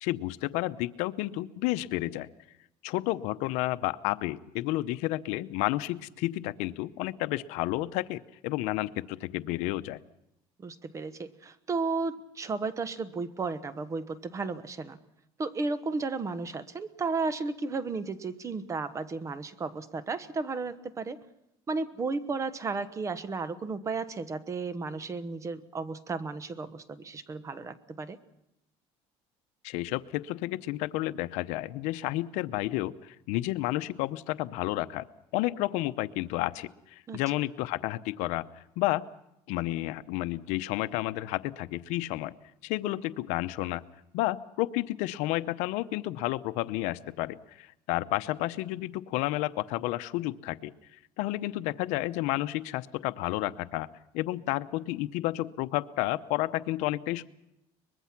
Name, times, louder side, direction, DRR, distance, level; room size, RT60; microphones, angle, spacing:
voice 1, 0.0-2.3 2.8-10.0 29.6-35.0 35.3-38.5 38.8-39.0 39.5-42.3 42.6-43.8 44.1-50.7 51.2-53.9 54.1-57.2, left 17 dB, 80° left, 14 dB, 0.8 m, -31 dB
voice 2, 10.6-15.0 15.4-21.2 21.7-28.2 37.1-37.2, right 4 dB, 25° right, 13 dB, 1.1 m, -34 dB
23.5 x 21.5 x 6.0 m, 0.85 s
cardioid pair, 130°, 12 cm